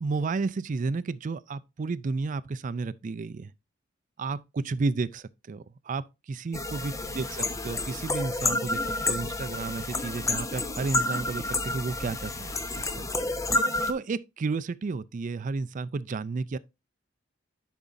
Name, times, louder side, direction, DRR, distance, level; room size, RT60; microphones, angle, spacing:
voice 1, 0.0-3.5 4.2-13.1 13.9-16.6, right 4 dB, 45° right, 0.4 m, -32 dB
sound 1, 6.5-13.9, left 2 dB, 15° left, 0.7 m, -30 dB
10.5 x 5.0 x 2.6 m
head